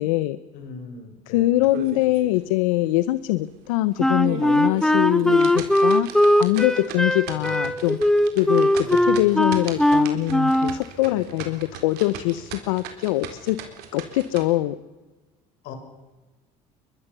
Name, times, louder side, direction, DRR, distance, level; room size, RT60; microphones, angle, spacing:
voice 1, 0.0-0.4 1.3-6.1 6.4-13.6 13.9-14.8, left 17 dB, 90° left, 15 dB, 0.8 m, -23 dB
voice 2, 0.5-1.6 7.4-7.6 8.8-9.6 11.0-11.4 15.6-15.7, left 5 dB, 70° left, 6 dB, 5.8 m, -41 dB
sound 1, 1.6-2.4 2.8-2.9 3.4-3.5 4.0-14.4, right 8 dB, 75° right, 4.1 m, -38 dB
Wind instrument woodwind instrument, 4.0-10.8, left 1 dB, 5° left, 1.2 m, -20 dB
23.0 x 21.5 x 6.9 m, 1.2 s
supercardioid pair, 85°, 17 cm